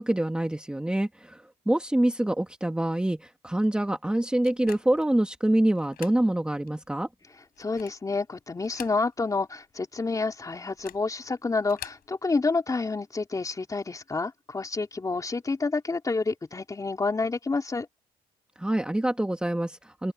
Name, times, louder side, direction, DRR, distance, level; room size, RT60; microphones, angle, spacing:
voice 1, 0.0-7.1 18.6-20.1, right 1 dB, 5° right, 1.7 m, -26 dB
sound 1, 4.4-5.1 5.8-6.2 6.7-6.8 7.5-8.1 8.6-9.4 9.6-9.7 10.7-11.1 11.6-12.1, left 12 dB, 65° left, 7.1 m, -45 dB
voice 2, 7.6-17.9, left 3 dB, 20° left, 3.5 m, -29 dB
open air
cardioid pair, 110°, 17 cm